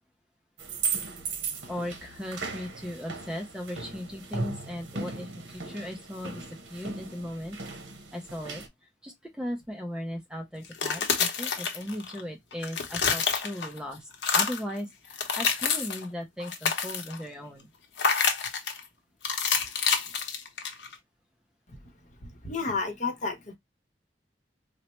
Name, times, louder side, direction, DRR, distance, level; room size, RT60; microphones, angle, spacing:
sound 1, 0.6-8.7, right 4 dB, 75° right, 0.8 m, -37 dB
voice 1, 1.7-7.6 8.1-8.6 9.0-17.7, equal, 5° right, 0.5 m, -37 dB
sound 2, 10.6-12.2 12.5-13.8 14.1-14.7 15.1-16.1 16.4-17.2 18.0-18.8 19.2-20.9, left 5 dB, 70° left, 0.8 m, -28 dB
voice 2, 22.2-23.5, left 4 dB, 40° left, 0.8 m, -32 dB
4.2 x 2.0 x 2.9 m
head